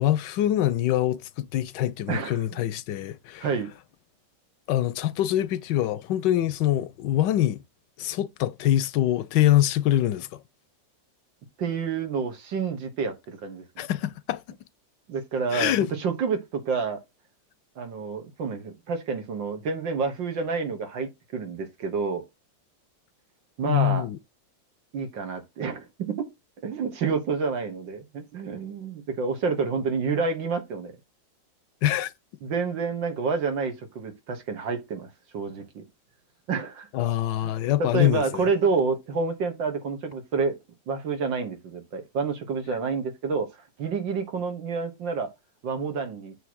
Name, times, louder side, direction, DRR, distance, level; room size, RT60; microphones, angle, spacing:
voice 1, 0.0-3.5 4.7-7.6 8.0-10.4 13.8-14.6 15.5-15.9 23.6-24.2 31.8-32.1 36.9-38.5, left 12 dB, 80° left, 1.2 m, -24 dB
voice 2, 2.1-2.4 3.4-3.7 11.6-13.6 15.1-17.0 17.8-22.2 23.6-24.1 24.9-26.3 26.6-31.0 32.4-35.9 36.5-36.9 37.4-40.6 40.9-43.5 43.8-45.3 45.6-46.4, right 5 dB, 85° right, 2.2 m, -29 dB
7.8 x 3.1 x 6.2 m
omnidirectional pair, 2.0 m